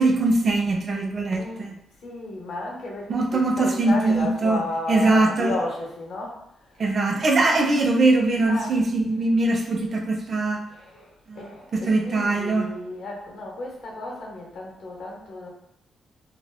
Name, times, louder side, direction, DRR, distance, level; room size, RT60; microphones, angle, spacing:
voice 1, 0.0-1.7 3.1-4.6 4.9-5.5 6.8-10.6 11.3-11.4 11.7-12.7, right 2 dB, 50° right, 2 dB, 0.5 m, -21 dB
voice 2, 1.3-1.8 2.0-6.8 7.4-8.0 8.5-8.8 9.1-9.3 9.7-9.8 10.7-15.5, left 2 dB, 70° left, -1 dB, 0.7 m, -34 dB
3.1 x 2.0 x 2.2 m, 0.79 s
cardioid pair, 65°, 0 cm